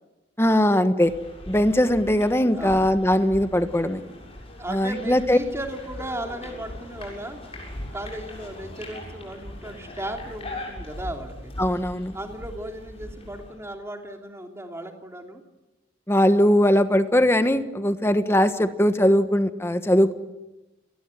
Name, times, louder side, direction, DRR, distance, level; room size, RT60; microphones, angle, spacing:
voice 1, 0.4-1.1 1.5-4.0 4.7-5.4 11.6-12.2 16.1-20.1, left 1 dB, 15° left, 9 dB, 1.4 m, -20 dB
sound 1, 1.0-13.5, left 1 dB, 30° left, 7.4 m, -40 dB
voice 2, 2.3-2.9 4.6-11.5 12.1-15.4, right 1 dB, 15° right, 3 dB, 3.0 m, -36 dB
30.0 x 19.5 x 9.1 m, 1.0 s
head